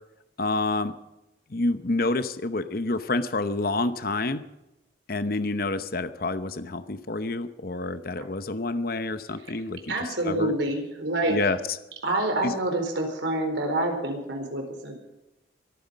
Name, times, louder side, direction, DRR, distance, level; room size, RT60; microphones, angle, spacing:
voice 1, 0.4-1.0 1.5-4.5 5.1-10.5 11.3-11.8 12.4-12.5, left 2 dB, 50° left, 12 dB, 0.9 m, -28 dB
voice 2, 9.9-11.5 12.0-14.9, right 1 dB, 75° right, 3 dB, 4.3 m, -27 dB
24.0 x 9.5 x 5.3 m, 0.96 s
head